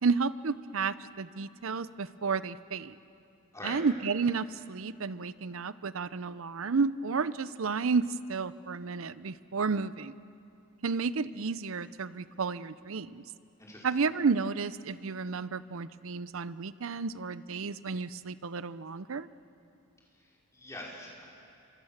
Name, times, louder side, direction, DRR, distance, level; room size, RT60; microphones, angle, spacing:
voice 1, 0.0-3.0 3.6-10.1 10.8-13.2 13.8-19.3, right 4 dB, 70° right, 16 dB, 0.6 m, -32 dB
voice 2, 13.6-14.0 20.1-21.2, left 1 dB, 15° left, -4 dB, 5.1 m, -44 dB
27.5 x 25.0 x 7.3 m, 2.6 s
head